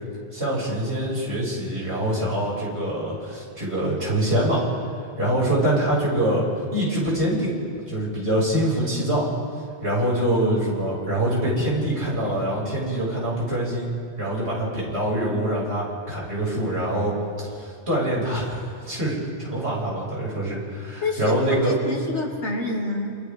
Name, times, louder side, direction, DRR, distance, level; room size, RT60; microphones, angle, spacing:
voice 1, 0.3-4.6 5.2-6.4 6.7-7.5 7.9-9.2 9.8-13.9 14.2-17.2 17.6-21.7, right 1 dB, 70° right, -6 dB, 7.8 m, -24 dB
voice 2, 10.2-10.6 21.0-23.2, left 1 dB, 80° left, -2 dB, 3.5 m, -28 dB
29.5 x 28.5 x 3.9 m, 2.2 s
omnidirectional pair, 1.2 m